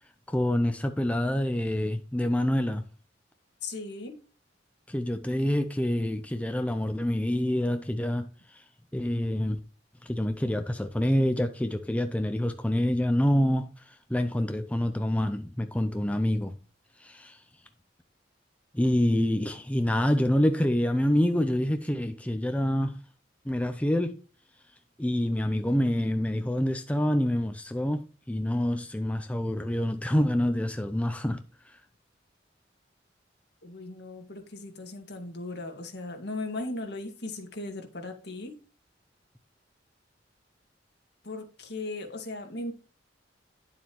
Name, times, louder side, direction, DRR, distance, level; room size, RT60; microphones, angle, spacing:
voice 1, 0.3-2.8 4.9-8.6 8.9-9.6 10.0-16.5 17.0-17.4 18.7-23.0 23.5-24.2 25.0-31.8, left 1 dB, 5° left, 0.5 m, -27 dB
voice 2, 3.6-4.2 33.6-38.6 41.2-42.7, left 2 dB, 60° left, 2.0 m, -37 dB
10.5 x 7.2 x 3.0 m
head